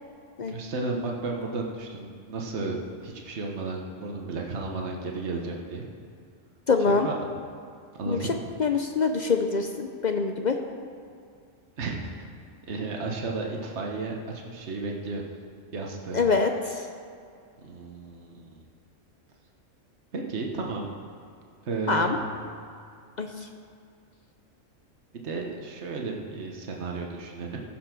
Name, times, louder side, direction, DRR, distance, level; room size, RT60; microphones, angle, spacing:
voice 1, 0.5-5.8 6.9-7.3 8.0-8.4 11.8-12.3 12.7-15.2 15.7-16.2 17.6-18.6 20.1-21.0 21.7-22.2 25.1-27.6, right 3 dB, 60° right, 0 dB, 1.4 m, -33 dB
voice 2, 6.7-7.1 8.1-8.2 8.6-10.6 16.1-16.5 21.9-22.2 23.2-23.3, left 4 dB, 50° left, 5 dB, 0.6 m, -24 dB
15.0 x 5.9 x 6.1 m, 2.4 s
omnidirectional pair, 1.3 m